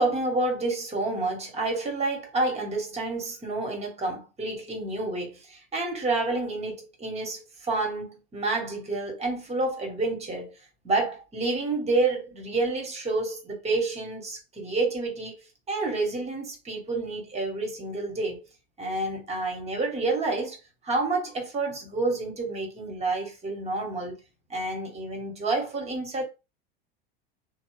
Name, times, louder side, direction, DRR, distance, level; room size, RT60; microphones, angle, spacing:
voice 1, 0.0-10.5 10.8-18.4 18.8-20.6 20.8-24.1 24.5-26.2, right 2 dB, 20° right, 1.2 m, -29 dB
2.6 x 2.0 x 3.2 m
hypercardioid pair, 90°, 29 cm